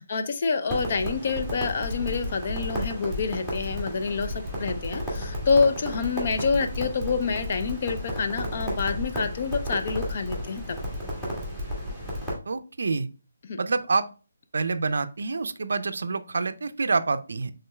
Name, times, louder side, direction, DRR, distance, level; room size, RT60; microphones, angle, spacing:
voice 1, 0.0-10.8 13.5-13.6, left 5 dB, 45° left, 8 dB, 0.5 m, -27 dB
Crackle, 0.7-12.3, equal, 10° left, 1.5 m, -33 dB
voice 2, 12.5-13.1 13.6-14.1 14.5-17.5, right 4 dB, 70° right, 11 dB, 0.4 m, -27 dB
5.3 x 3.7 x 2.2 m, 0.34 s
figure-of-eight pair, 155°, 0 cm